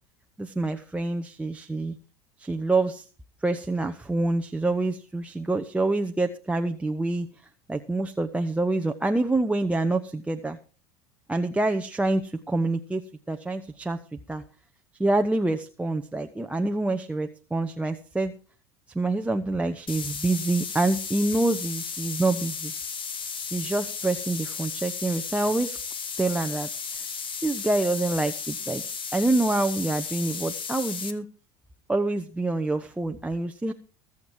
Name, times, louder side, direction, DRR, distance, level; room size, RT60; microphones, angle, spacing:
voice 1, 0.4-2.0 2.4-3.0 3.4-7.3 7.7-10.6 11.3-13.0 13.3-14.0 14.3-14.4 15.0-18.3 18.9-22.7 23.5-25.8 26.2-26.7 26.9-27.0 27.4-28.8 29.1-31.3 31.9-33.7, right 2 dB, 10° right, 5 dB, 1.0 m, -26 dB
sound 1, 19.9-31.1, left 6 dB, 35° left, 1.9 m, -34 dB
20.5 x 7.4 x 4.7 m, 0.37 s
supercardioid pair, 100°, 15 cm